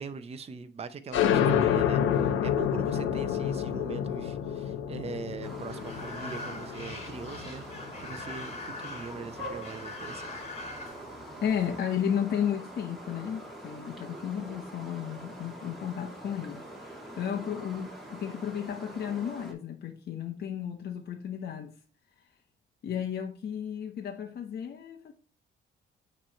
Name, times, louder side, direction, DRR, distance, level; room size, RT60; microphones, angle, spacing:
voice 1, 0.0-7.7 8.0-10.5, right 5 dB, 30° right, 0.6 m, -41 dB
sound 1, 1.1-8.4, left 9 dB, 85° left, 0.8 m, -28 dB
sound 2, 5.4-19.5, right 1 dB, ahead, 2.2 m, -44 dB
sound 3, 5.7-11.8, left 3 dB, 35° left, 2.0 m, -43 dB
voice 2, 11.4-21.7 22.8-25.1, left 8 dB, 55° left, 0.9 m, -33 dB
8.8 x 3.2 x 4.3 m
cardioid pair, 90°, 20 cm